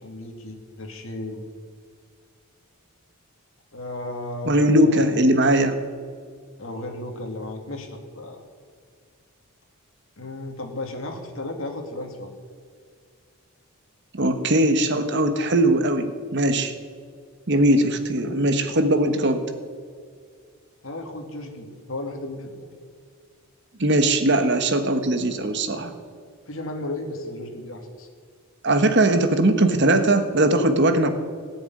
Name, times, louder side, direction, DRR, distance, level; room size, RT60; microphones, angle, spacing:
voice 1, 0.0-1.4 3.7-5.1 6.6-8.4 10.2-12.3 20.8-22.7 26.5-28.1, left 2 dB, 65° left, 3 dB, 2.5 m, -34 dB
voice 2, 4.4-5.8 14.1-16.7 17.5-19.4 23.8-25.9 28.6-31.1, right 1 dB, 55° right, 8 dB, 1.3 m, -20 dB
17.0 x 7.1 x 9.7 m, 2.1 s
head